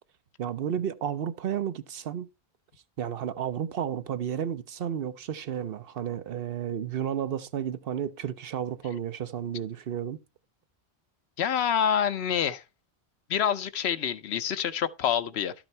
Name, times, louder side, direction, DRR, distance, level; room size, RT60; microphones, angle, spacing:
voice 1, 0.4-2.3 3.0-10.2, right 9 dB, 65° right, 0.9 m, -32 dB
voice 2, 11.4-12.6 13.3-15.5, left 8 dB, 80° left, 1.0 m, -27 dB
12.0 x 6.1 x 4.4 m
omnidirectional pair, 1.1 m